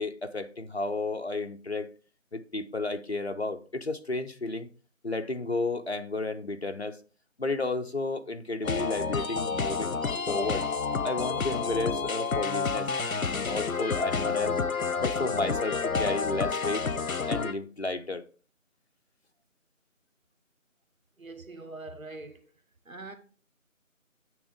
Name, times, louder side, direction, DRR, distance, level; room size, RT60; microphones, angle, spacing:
voice 1, 0.0-1.9 2.3-4.7 5.0-7.0 7.4-10.0 10.3-10.7 11.0-12.9 13.1-14.6 15.0-16.8 17.3-18.2, left 2 dB, 50° left, 0.6 m, -32 dB
sound 1, 8.6-17.5, left 5 dB, 85° left, 0.8 m, -29 dB
voice 2, 21.2-22.5 22.8-23.1, right 2 dB, 80° right, 1.4 m, -43 dB
9.2 x 3.3 x 4.9 m
figure-of-eight pair, 175°, 40 cm